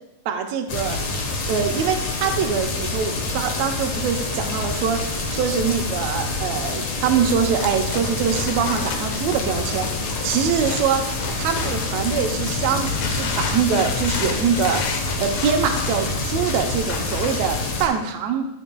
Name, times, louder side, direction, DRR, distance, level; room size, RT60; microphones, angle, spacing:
voice 1, 0.2-1.0 1.5-5.0 5.3-9.9 10.2-11.0 11.4-18.5, right 7 dB, 90° right, 3 dB, 1.5 m, -24 dB
sound 1, 0.7-17.9, left 3 dB, 60° left, 2.1 m, -27 dB
sound 2, 7.6-12.0 12.4-17.5, left 5 dB, 90° left, 2.9 m, -32 dB
12.5 x 7.2 x 2.3 m, 0.85 s
omnidirectional pair, 4.1 m